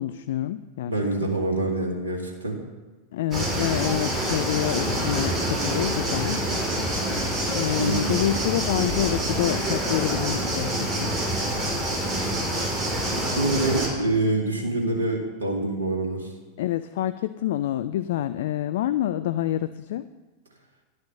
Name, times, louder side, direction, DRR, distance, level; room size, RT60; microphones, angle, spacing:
voice 1, 0.0-0.9 1.2-1.3 3.1-6.4 7.5-11.1 16.6-20.1, left 12 dB, 55° left, 13 dB, 0.3 m, -27 dB
voice 2, 0.9-2.6 7.8-8.1 13.4-16.3, right 2 dB, 70° right, 0 dB, 2.1 m, -25 dB
sound 1, 3.3-13.9, right 1 dB, 20° right, 2.9 m, -26 dB
11.5 x 6.4 x 6.6 m, 1.2 s
figure-of-eight pair, 90°, 0 cm